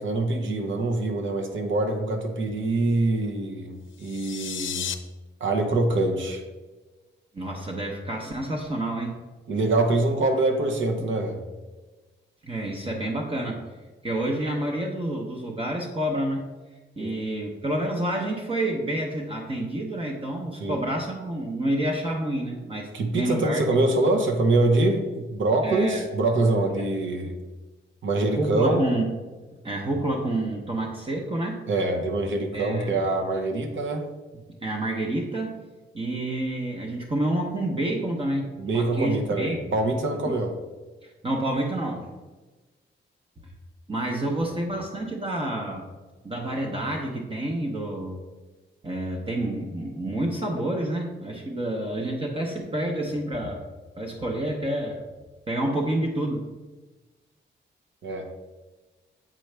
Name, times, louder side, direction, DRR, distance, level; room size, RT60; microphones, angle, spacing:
voice 1, 0.0-4.9 5.4-6.4 9.5-11.4 17.0-17.2 20.6-20.8 22.9-27.3 28.0-28.8 31.7-34.1 38.6-40.5 58.0-58.3, right 2 dB, 75° right, 3 dB, 0.9 m, -24 dB
sound 1, 3.9-4.9, left 9 dB, 75° left, 0.5 m, -33 dB
voice 2, 7.3-9.1 12.4-13.6 14.0-16.5 17.0-22.9 23.2-23.6 25.6-26.1 28.3-29.1 29.6-31.6 32.5-33.1 34.3-35.5 35.9-39.6 41.0-42.1 43.9-45.8 46.2-48.2 48.8-53.6 54.0-55.0 55.5-56.5, right 1 dB, 30° right, 0 dB, 0.8 m, -28 dB
7.5 x 4.6 x 3.3 m, 1.2 s
wide cardioid pair, 125°, 20 cm